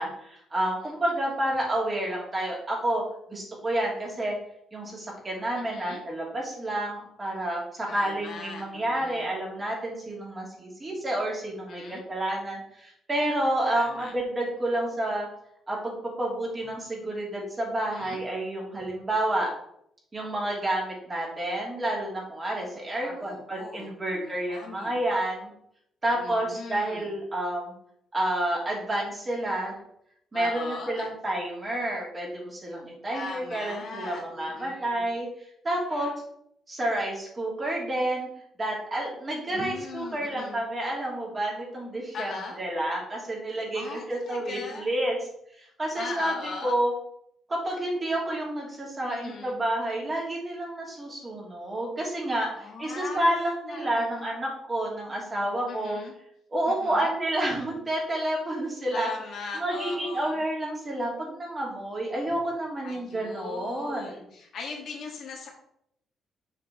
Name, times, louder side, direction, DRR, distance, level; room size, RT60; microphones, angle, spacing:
voice 1, 0.0-3.0 3.3-4.4 4.7-15.3 15.7-19.5 20.1-25.5 26.0-27.7 28.1-29.8 30.3-35.3 35.6-36.1 36.7-38.3 38.6-45.2 45.6-46.3 46.6-46.9 47.5-56.0 56.5-59.1 59.5-64.1, right 1 dB, 25° right, -3 dB, 2.9 m, -29 dB
voice 2, 5.6-6.0 7.9-9.3 11.7-12.0 13.7-14.1 17.9-18.2 23.0-24.9 26.1-27.1 30.3-31.1 33.1-35.0 35.9-36.1 39.4-40.6 42.1-42.6 43.7-44.9 45.9-46.7 49.1-49.6 52.5-54.3 55.7-56.1 56.7-57.1 58.9-60.4 62.8-65.5, left 4 dB, 65° left, 0 dB, 1.9 m, -40 dB
6.7 x 4.6 x 4.3 m, 0.73 s
cardioid pair, 90°, 0 cm